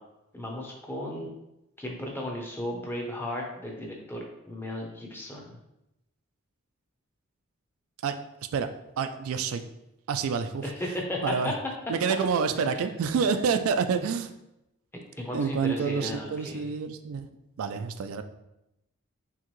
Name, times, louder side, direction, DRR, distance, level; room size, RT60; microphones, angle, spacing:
voice 1, 0.3-1.3 1.8-5.6 10.6-11.5 12.5-12.9 15.2-16.6, left 1 dB, 10° left, -1 dB, 0.7 m, -35 dB
voice 2, 9.0-9.6 10.1-10.7 11.2-11.5 11.9-14.3 15.3-17.3 17.6-18.2, right 6 dB, 75° right, 9 dB, 0.3 m, -28 dB
4.6 x 3.5 x 3.0 m, 0.89 s
head